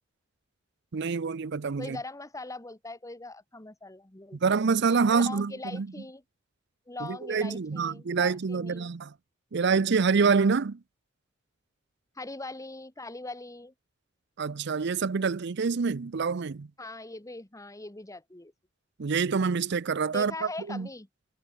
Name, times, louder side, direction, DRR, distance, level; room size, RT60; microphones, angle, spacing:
voice 1, 0.9-2.0 4.4-5.9 7.0-9.1 9.5-10.8 14.4-16.7 19.0-20.3 20.7-20.9, right 5 dB, 60° right, 0.6 m, -26 dB
voice 2, 1.8-4.4 5.1-6.2 6.9-8.9 12.1-13.7 16.8-18.5 20.1-21.1, left 2 dB, 15° left, 1.4 m, -41 dB
head